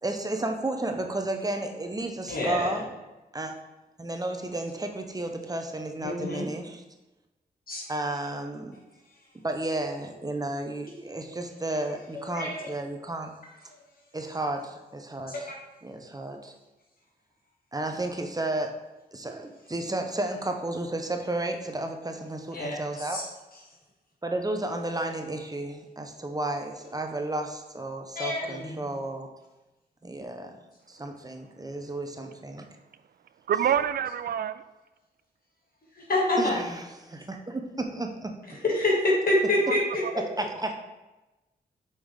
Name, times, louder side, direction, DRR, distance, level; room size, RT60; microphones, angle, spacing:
voice 1, 0.0-2.8 3.3-3.5 4.0-6.8 7.9-8.8 9.4-13.3 14.1-15.3 15.8-16.5 17.7-18.7 19.1-23.2 24.2-29.3 30.0-30.5 30.9-32.7 36.4-38.3 40.4-40.7, right 2 dB, 20° right, 4 dB, 0.8 m, -32 dB
voice 2, 2.3-2.7 6.0-6.5 7.7-7.9 12.1-12.7 15.3-15.4 22.5-23.3 28.2-28.9 36.0-36.6 38.5-40.2, left 1 dB, 60° left, -3 dB, 1.9 m, -27 dB
voice 3, 33.5-34.6 40.0-40.1, right 9 dB, 65° right, 13 dB, 0.4 m, -26 dB
5.6 x 4.8 x 3.5 m, 1.1 s
cardioid pair, 55°, 17 cm